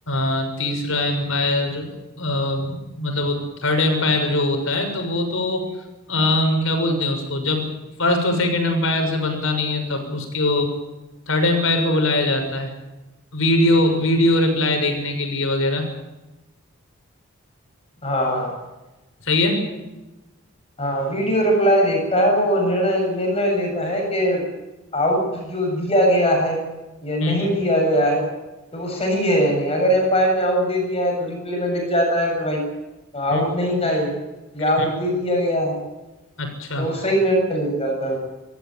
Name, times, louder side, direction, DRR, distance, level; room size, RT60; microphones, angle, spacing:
voice 1, 0.1-5.7 6.1-7.7 8.0-10.7 11.3-12.7 13.3-15.9 19.2-19.6 27.2-27.5 33.3-33.4 34.8-34.9 36.4-36.9, left 2 dB, 65° left, 4 dB, 6.3 m, -21 dB
voice 2, 18.0-18.6 20.8-24.4 24.9-26.6 27.0-28.2 28.7-32.6 33.1-34.1 34.5-35.8 36.8-38.2, equal, 30° left, 1 dB, 7.6 m, -21 dB
26.5 x 15.0 x 9.1 m, 1.1 s
head